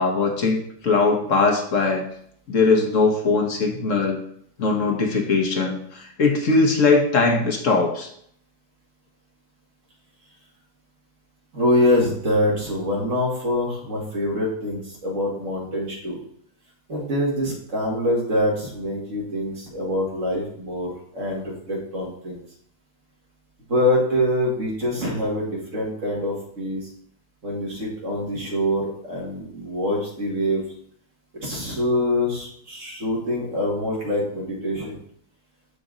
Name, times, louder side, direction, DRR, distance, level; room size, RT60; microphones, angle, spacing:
voice 1, 0.0-2.0 2.5-4.2 4.6-8.1, left 3 dB, 50° left, 2 dB, 1.4 m, -20 dB
voice 2, 11.5-16.2 16.9-22.4 23.7-26.8 27.4-30.6 31.4-35.0, left 1 dB, 50° right, -3 dB, 2.3 m, -25 dB
6.7 x 5.0 x 3.9 m, 0.65 s
omnidirectional pair, 1.8 m